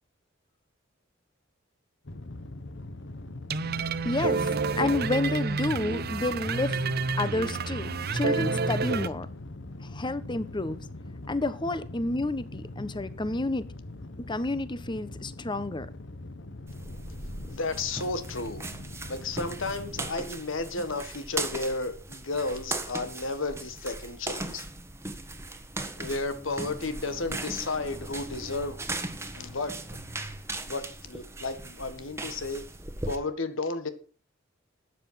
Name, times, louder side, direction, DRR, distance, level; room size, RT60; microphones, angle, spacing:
sound 1, 2.0-20.1, left 2 dB, 65° left, 1.3 m, -42 dB
sound 2, 3.5-9.1, right 4 dB, 55° right, 0.7 m, -29 dB
voice 1, 4.0-4.5 4.8-6.8 7.2-9.3 9.9-10.8 11.3-13.7 14.3-15.9, left 2 dB, 25° left, 14 dB, 1.0 m, -30 dB
sound 3, 16.7-33.2, right 2 dB, 15° right, 1.4 m, -38 dB
voice 2, 17.5-18.6 19.1-24.6 26.0-28.8 29.3-29.8 30.7-32.6 33.0-33.9, left 3 dB, 90° left, 10 dB, 1.8 m, -33 dB
13.0 x 9.2 x 5.8 m, 0.39 s
head